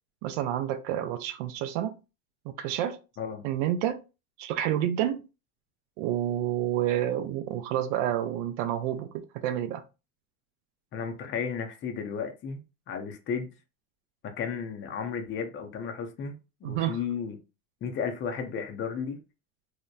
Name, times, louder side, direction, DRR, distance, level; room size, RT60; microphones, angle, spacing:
voice 1, 0.2-2.0 2.6-3.0 3.4-4.0 4.4-5.2 6.0-9.1 9.4-9.8 16.6-17.0, right 11 dB, 60° right, 0.5 m, -29 dB
voice 2, 10.9-12.6 12.9-13.5 14.2-17.4 17.8-19.2, left 6 dB, 25° left, 0.5 m, -33 dB
2.8 x 2.1 x 2.3 m
supercardioid pair, 100°, 44 cm